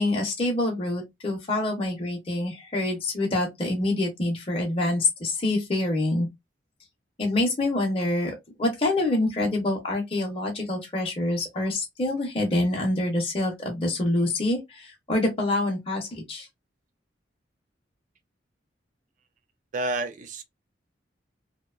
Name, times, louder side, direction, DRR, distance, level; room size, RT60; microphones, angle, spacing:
voice 1, 0.0-6.3 7.2-16.5, left 2 dB, 30° left, 0.6 m, -26 dB
voice 2, 19.7-20.4, right 2 dB, 45° right, 0.4 m, -29 dB
2.7 x 2.1 x 2.3 m
head